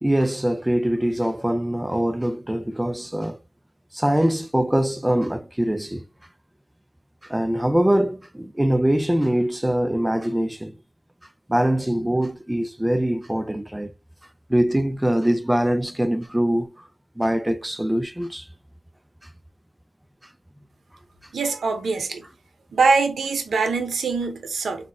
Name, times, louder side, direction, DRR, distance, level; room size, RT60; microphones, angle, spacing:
voice 1, 0.0-3.4 3.9-6.0 7.2-10.8 11.5-13.9 14.5-16.7 17.2-18.5, right 1 dB, 10° right, 0.3 m, -23 dB
voice 2, 21.3-22.2 22.7-24.9, right 4 dB, 85° right, 0.7 m, -23 dB
3.6 x 2.1 x 3.4 m
wide cardioid pair, 95°, 0 cm